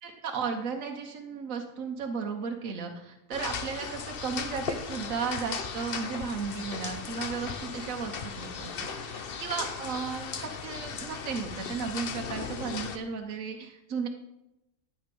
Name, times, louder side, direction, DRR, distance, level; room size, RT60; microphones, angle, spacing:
voice 1, 0.0-14.1, right 5 dB, 75° right, 3 dB, 1.4 m, -35 dB
sound 1, 3.3-13.0, left 6 dB, 50° left, 0.9 m, -37 dB
12.0 x 8.8 x 5.2 m, 0.93 s
omnidirectional pair, 1.4 m